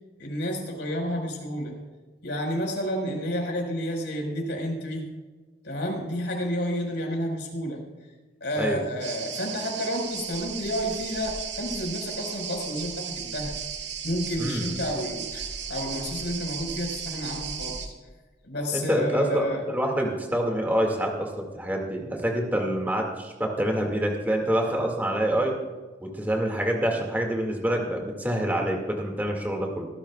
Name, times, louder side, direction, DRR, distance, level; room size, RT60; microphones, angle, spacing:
voice 1, 0.2-1.8 2.2-5.1 5.6-7.8 8.4-13.5 14.0-17.9 18.4-19.7, equal, 85° left, 0 dB, 4.8 m, -30 dB
sound 1, 9.0-17.9, right 7 dB, 80° right, 1.6 m, -35 dB
voice 2, 14.4-14.7 18.7-25.5 26.0-29.8, right 1 dB, 10° right, 1 dB, 2.0 m, -26 dB
22.5 x 13.5 x 2.4 m, 1.3 s
head